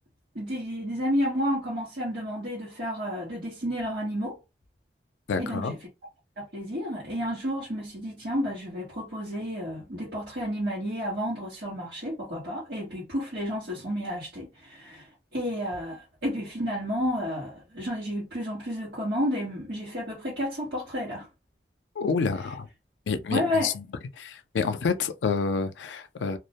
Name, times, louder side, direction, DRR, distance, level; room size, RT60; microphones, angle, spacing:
voice 1, 0.3-4.4 5.4-5.8 6.4-21.3 23.3-23.7, equal, 65° right, 1.0 m, -31 dB
voice 2, 5.3-5.7 22.0-22.7 23.1-23.8 24.2-26.4, left 5 dB, 90° left, 0.4 m, -28 dB
2.3 x 2.0 x 2.8 m
head